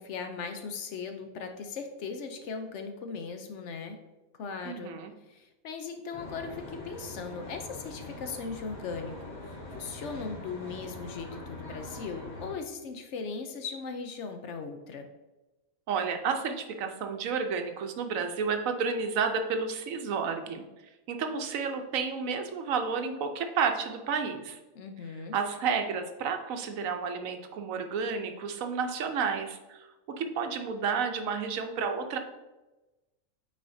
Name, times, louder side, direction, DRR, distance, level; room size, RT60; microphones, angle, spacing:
voice 1, 0.0-4.0 4.4-4.9 5.3-9.2 9.4-15.1 24.7-25.4, left 5 dB, 65° left, 6 dB, 0.9 m, -38 dB
voice 2, 4.6-5.1 15.9-20.6 21.1-24.6 25.3-29.9 30.2-32.2, right 5 dB, 80° right, 6 dB, 1.1 m, -31 dB
Traffic noise roadway noise, 6.1-12.5, left 1 dB, 35° left, 1.7 m, -43 dB
8.4 x 4.2 x 2.7 m, 1.1 s
omnidirectional pair, 1.4 m